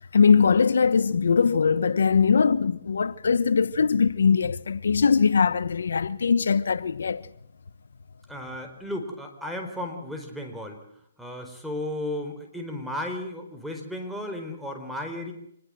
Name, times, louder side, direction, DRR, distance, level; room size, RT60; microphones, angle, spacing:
voice 1, 0.1-7.3, left 5 dB, 75° left, 1.1 m, -21 dB
voice 2, 8.3-10.8 11.2-15.3, left 1 dB, ahead, 4.3 m, -34 dB
25.5 x 20.5 x 7.7 m
hypercardioid pair, 155°, 0 cm